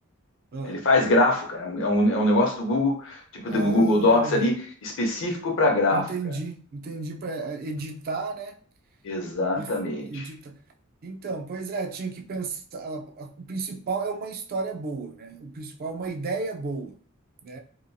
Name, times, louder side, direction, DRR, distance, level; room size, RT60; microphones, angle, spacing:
voice 1, 0.7-6.0 9.0-10.3, left 1 dB, 60° left, 0.7 m, -23 dB
voice 2, 3.5-4.5 5.9-8.6 9.6-9.7 10.1-10.6 11.0-17.0 17.4-17.6, right 3 dB, 45° right, 0.3 m, -33 dB
2.8 x 2.2 x 2.6 m
head